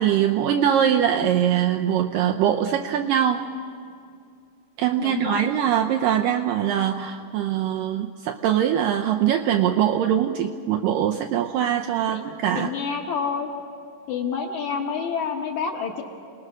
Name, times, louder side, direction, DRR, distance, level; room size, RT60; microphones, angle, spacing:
voice 1, 0.0-3.5 4.8-12.7, right 10 dB, 80° right, 4 dB, 2.0 m, -22 dB
voice 2, 5.0-5.4 12.1-12.2 12.5-13.5 14.1-16.0, left 6 dB, 60° left, 1 dB, 2.3 m, -28 dB
28.0 x 19.5 x 6.3 m, 2.3 s
omnidirectional pair, 4.6 m